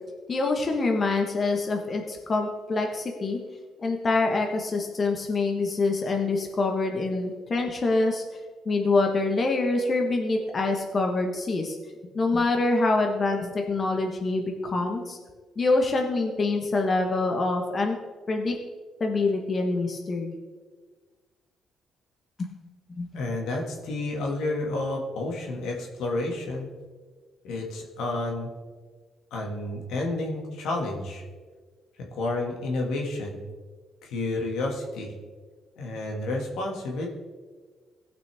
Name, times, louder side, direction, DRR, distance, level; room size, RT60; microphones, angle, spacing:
voice 1, 0.3-3.4 3.8-8.2 8.6-11.8 12.1-15.2 15.6-17.9 18.3-18.6 19.0-20.4 22.4-22.5 22.9-23.1, left 3 dB, 40° left, 2 dB, 1.3 m, -25 dB
voice 2, 23.1-26.7 27.4-28.5 29.3-31.2 32.1-33.4 34.0-35.1 35.8-37.1, left 2 dB, 85° left, 0 dB, 2.0 m, -30 dB
17.0 x 6.0 x 3.5 m, 1.4 s
cardioid pair, 90°, 0 cm